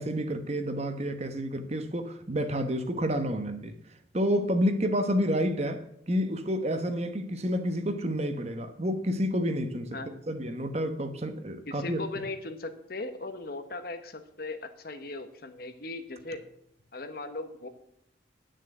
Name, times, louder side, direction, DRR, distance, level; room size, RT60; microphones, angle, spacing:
voice 1, 0.0-3.7 4.1-12.0, equal, 35° right, 8 dB, 1.0 m, -29 dB
voice 2, 11.7-16.4 16.9-17.7, left 2 dB, 50° left, 8 dB, 1.1 m, -38 dB
10.5 x 6.4 x 7.8 m, 0.73 s
head